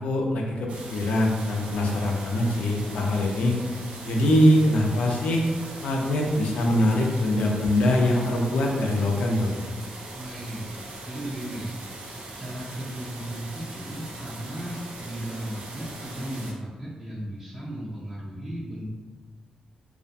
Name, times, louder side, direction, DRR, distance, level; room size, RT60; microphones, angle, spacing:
voice 1, 0.0-3.6 4.0-5.4 5.8-9.5, left 1 dB, 80° left, 0 dB, 0.4 m, -23 dB
sound 1, 0.7-16.5, right 2 dB, 75° right, 0.5 m, -40 dB
voice 2, 10.1-10.7 11.0-18.8, right 1 dB, 15° right, -8 dB, 0.5 m, -36 dB
2.3 x 2.1 x 2.6 m, 1.4 s
wide cardioid pair, 125°, 2 cm